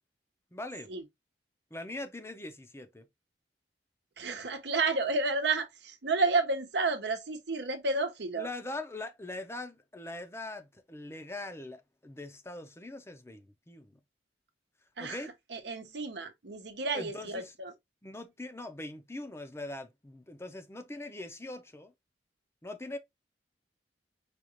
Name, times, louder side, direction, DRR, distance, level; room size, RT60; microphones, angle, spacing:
voice 1, 0.5-0.9 1.7-3.1 8.4-14.0 15.0-15.3 16.9-17.5 18.0-21.9 22.6-23.0, left 2 dB, 15° left, 0.6 m, -42 dB
voice 2, 4.2-8.5 15.0-15.2 15.5-17.7, right 3 dB, 70° right, 0.8 m, -31 dB
5.0 x 2.4 x 3.0 m
head